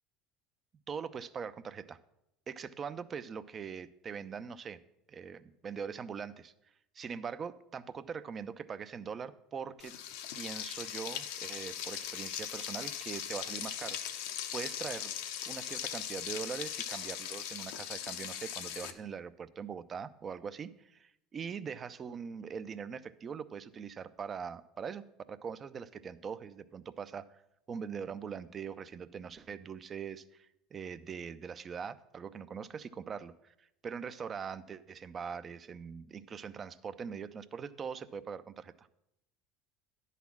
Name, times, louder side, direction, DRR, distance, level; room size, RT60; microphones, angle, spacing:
voice 1, 0.9-2.0 2.5-4.8 5.1-6.5 6.9-9.9 10.3-14.0 14.5-15.1 15.5-27.4 27.7-38.9, right 6 dB, 35° right, 14 dB, 0.5 m, -42 dB
Frying (food), 9.8-18.9, left 10 dB, 75° left, 0.7 m, -39 dB
10.5 x 4.2 x 7.1 m, 0.82 s
hypercardioid pair, 85°, 0 cm